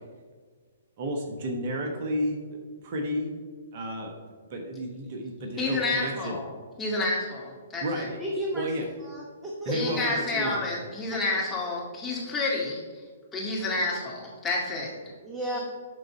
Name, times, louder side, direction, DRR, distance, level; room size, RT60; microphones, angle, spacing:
voice 1, 1.0-2.6 2.8-3.3 3.7-6.4 7.8-8.2 8.5-8.8 9.6-10.6, equal, 45° right, 3 dB, 1.2 m, -32 dB
voice 2, 5.6-6.5 6.8-8.1 9.7-12.8 13.3-14.9 15.5-15.6, left 2 dB, 10° left, -4 dB, 2.0 m, -29 dB
voice 3, 8.2-8.7 9.0-10.0 10.4-10.5 11.1-11.2 15.2-15.6, equal, 10° right, -2 dB, 1.0 m, -33 dB
11.0 x 4.0 x 4.4 m, 1.5 s
figure-of-eight pair, 120°, 0 cm